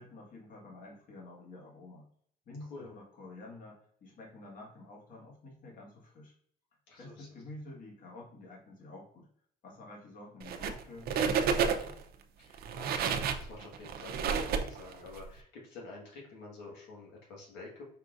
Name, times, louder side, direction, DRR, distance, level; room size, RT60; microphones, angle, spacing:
voice 1, 0.0-2.1 2.4-6.3 7.0-9.3 9.6-12.0, left 2 dB, 55° left, -2 dB, 1.7 m, -49 dB
voice 2, 6.9-7.3 12.4-17.8, left 3 dB, 90° left, -3 dB, 1.5 m, -49 dB
sound 1, 10.4-10.8 11.1-12.0 12.5-15.2, right 6 dB, 65° right, 0.6 m, -30 dB
5.3 x 3.8 x 2.5 m, 0.63 s
cardioid pair, 110°, 17 cm